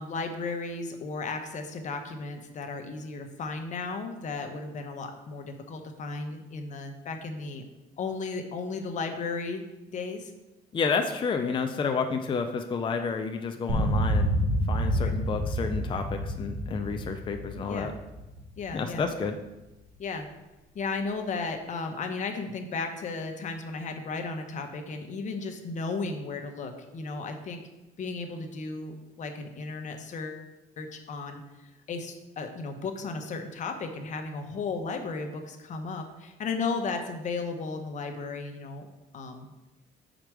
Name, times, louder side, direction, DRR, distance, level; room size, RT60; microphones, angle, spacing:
voice 1, 0.0-7.6 8.0-10.3 15.0-15.1 17.7-17.9 18.6-19.1 20.0-20.3 20.7-27.6 28.0-30.5 30.8-38.9 39.1-39.5, left 4 dB, 45° left, 5 dB, 1.0 m, -35 dB
voice 2, 10.7-14.3 14.7-17.9 18.7-19.4, left 5 dB, 30° left, 5 dB, 0.5 m, -30 dB
sound 1, 13.7-19.0, equal, 80° right, 1.8 m, -28 dB
5.1 x 4.5 x 6.1 m, 1.0 s
cardioid pair, 110°, 17 cm